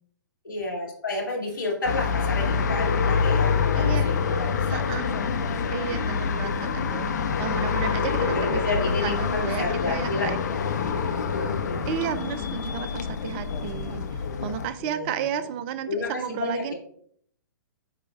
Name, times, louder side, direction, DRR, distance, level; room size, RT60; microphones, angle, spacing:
voice 1, 0.4-4.8 7.9-10.3 11.3-11.9 14.8-15.2 15.9-16.7, left 3 dB, 75° left, -2 dB, 2.6 m, -31 dB
sound 1, 1.8-14.7, left 6 dB, 55° left, 0.8 m, -26 dB
voice 2, 3.8-4.1 4.7-5.1 5.7-7.1 7.4-10.4 11.8-14.0 14.4-16.7, right 9 dB, 30° right, 12 dB, 0.5 m, -32 dB
9.1 x 4.9 x 2.4 m, 0.63 s
figure-of-eight pair, 120°, 11 cm